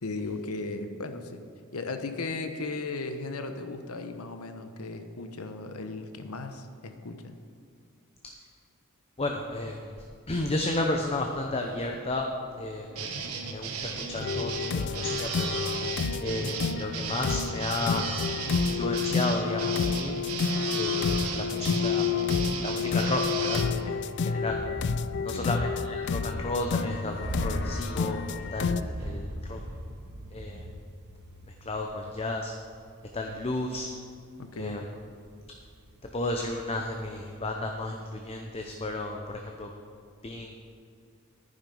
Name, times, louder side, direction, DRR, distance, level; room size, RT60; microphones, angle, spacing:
voice 1, 0.0-1.4 1.7-7.3 25.3-25.5 34.4-34.9, left 3 dB, 90° left, 7 dB, 1.0 m, -36 dB
voice 2, 9.2-9.8 10.3-12.3 12.6-13.1 13.5-15.7 16.2-18.1 18.6-20.1 20.7-22.1 22.6-24.0 24.2-24.6 25.2-29.6 30.3-30.7 31.7-32.5 33.1-33.9 34.6-34.8 36.1-39.7 40.2-40.6, left 2 dB, 25° left, 2 dB, 0.7 m, -33 dB
sound 1, 12.9-23.6, right 5 dB, 90° right, 1.2 m, -35 dB
sound 2, 14.2-28.8, left 5 dB, 55° left, 0.4 m, -29 dB
sound 3, 24.5-34.2 34.6-37.3, equal, 50° right, 1.1 m, -39 dB
11.0 x 9.5 x 5.5 m, 2.3 s
head